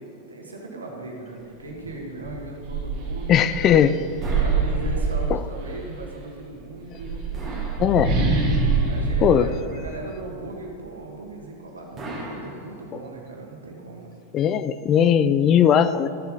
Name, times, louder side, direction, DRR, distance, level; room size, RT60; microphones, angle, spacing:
voice 1, 0.0-3.5 4.4-7.2 8.8-14.1, right 2 dB, 75° right, 0 dB, 1.6 m, -38 dB
sound 1, 1.7-1.8 2.2-5.9 6.8-10.4, right 4 dB, 40° right, 2.3 m, -25 dB
voice 2, 3.3-4.0 5.3-5.4 7.8-8.2 9.2-9.5 14.3-16.1, left 9 dB, 30° left, 13 dB, 0.3 m, -18 dB
sound 2, 4.2-5.4 7.3-8.6 12.0-13.3, right 1 dB, 20° right, 2.1 m, -38 dB
13.0 x 7.0 x 3.9 m, 2.6 s
figure-of-eight pair, 90°, 0 cm